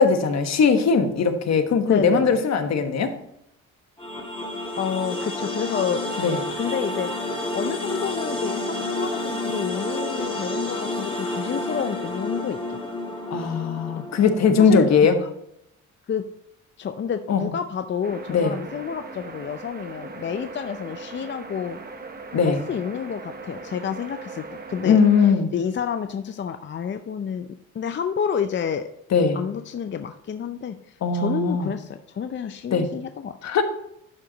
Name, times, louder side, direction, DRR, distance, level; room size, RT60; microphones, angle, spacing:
voice 1, 0.0-3.1 6.2-6.4 13.3-15.2 17.3-17.5 18.3-18.5 22.3-22.6 24.8-25.5 29.1-29.4 31.0-31.7 32.7-32.9 33.4-33.6, left 5 dB, 60° left, 7 dB, 1.3 m, -19 dB
voice 2, 1.9-2.4 4.8-6.0 6.6-12.8 14.6-14.9 15.2-15.3 16.1-16.2 16.8-21.8 22.4-25.0 25.5-27.5 27.7-28.9 29.3-33.3, left 7 dB, 40° left, 8 dB, 0.5 m, -29 dB
sound 1, 4.0-15.0, left 2 dB, 15° left, 2.3 m, -30 dB
sound 2, 18.0-25.3, right 3 dB, 30° right, 1.1 m, -39 dB
11.5 x 5.0 x 3.9 m, 0.78 s
cardioid pair, 90°, 30 cm